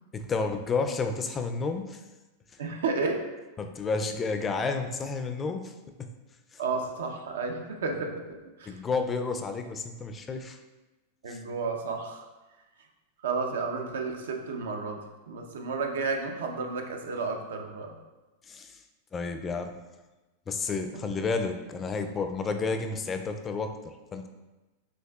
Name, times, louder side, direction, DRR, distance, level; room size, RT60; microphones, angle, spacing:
voice 1, 0.1-2.0 3.6-5.7 6.0-6.1 6.5-6.6 8.7-10.6 11.3-11.4 18.5-18.8 19.1-19.8 20.5-24.3, left 4 dB, 20° left, 6 dB, 0.3 m, -31 dB
voice 2, 2.6-3.3 6.6-8.8 11.2-12.3 13.2-15.0 15.3-18.0 20.9-21.0, right 4 dB, 85° right, 3 dB, 0.6 m, -32 dB
6.4 x 2.6 x 2.3 m, 1.1 s
supercardioid pair, 130°, 0 cm